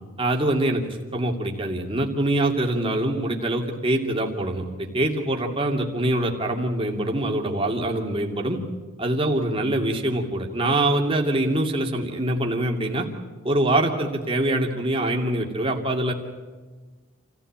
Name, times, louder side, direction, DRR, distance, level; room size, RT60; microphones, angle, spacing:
voice 1, 0.2-8.6 9.0-13.0 13.4-16.1, right 1 dB, 25° right, 1 dB, 2.7 m, -24 dB
28.5 x 15.5 x 8.9 m, 1.4 s
head